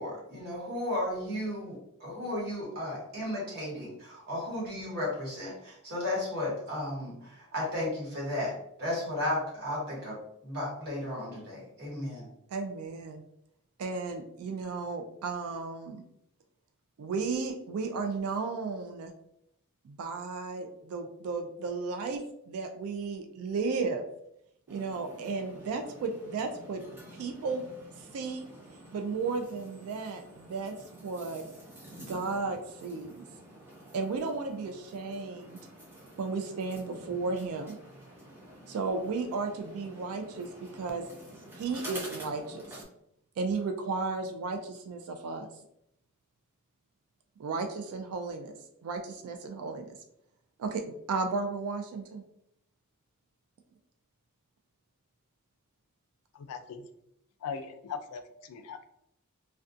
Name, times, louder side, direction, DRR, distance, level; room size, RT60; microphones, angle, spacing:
voice 1, 0.0-10.2 10.4-12.2, left 1 dB, 50° right, -5 dB, 1.1 m, -34 dB
voice 2, 12.5-13.2 13.8-16.0 17.0-19.1 19.8-22.2 22.5-24.0 24.7-26.8 27.2-27.6 28.0-28.5 28.9-31.4 32.0-33.3 33.9-35.6 36.2-37.8 38.7-41.0 41.6-42.8 43.4-45.5 47.4-48.6 48.8-50.0 50.6-50.8 51.1-52.2, right 4 dB, 75° right, 5 dB, 0.3 m, -34 dB
sound 1, 24.7-42.8, right 1 dB, 10° right, 0.5 m, -49 dB
voice 3, 56.5-56.8 57.4-58.2 58.5-58.8, left 6 dB, 90° left, 8 dB, 0.3 m, -39 dB
2.4 x 2.2 x 2.5 m, 0.77 s
head